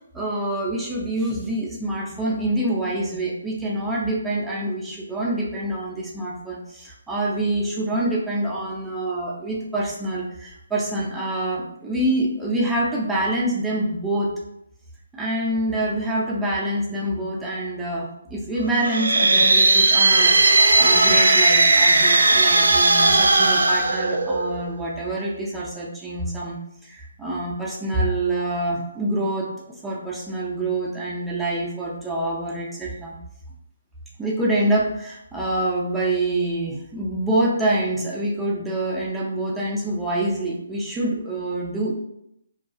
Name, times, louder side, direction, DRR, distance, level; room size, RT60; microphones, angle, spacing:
voice 1, 0.1-14.3 15.1-33.2 34.2-41.9, right 1 dB, 5° right, -5 dB, 0.3 m, -26 dB
sound 1, 18.7-24.7, right 2 dB, 80° right, 0.3 m, -17 dB
2.3 x 2.2 x 2.4 m, 0.80 s
hypercardioid pair, 155°, 0 cm